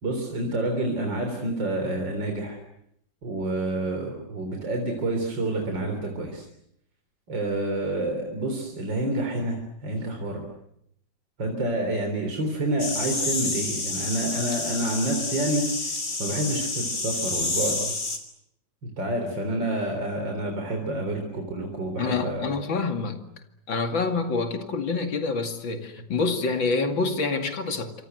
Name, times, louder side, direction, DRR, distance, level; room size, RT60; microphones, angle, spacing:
voice 1, 0.0-2.6 3.2-6.5 7.3-9.6 9.8-10.4 11.4-15.9 16.2-18.0 18.8-22.5, right 1 dB, 75° right, 4.5 m, -28 dB
sound 1, 12.8-18.2, left 3 dB, 40° left, 3.7 m, -29 dB
voice 2, 22.0-23.2 23.7-27.9, left 4 dB, 85° left, 3.1 m, -27 dB
27.5 x 25.5 x 7.9 m
omnidirectional pair, 2.0 m